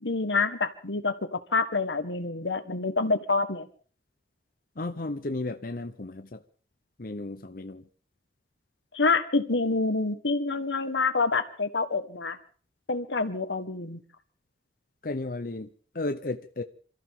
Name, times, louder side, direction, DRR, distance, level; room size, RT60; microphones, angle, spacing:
voice 1, 0.0-3.7 8.9-12.4 12.9-14.0, left 3 dB, 90° left, 10 dB, 1.6 m, -27 dB
voice 2, 4.8-6.4 7.0-7.9 15.0-15.7 15.9-16.6, left 2 dB, 50° left, 8 dB, 0.8 m, -34 dB
27.0 x 14.0 x 3.8 m, 0.42 s
head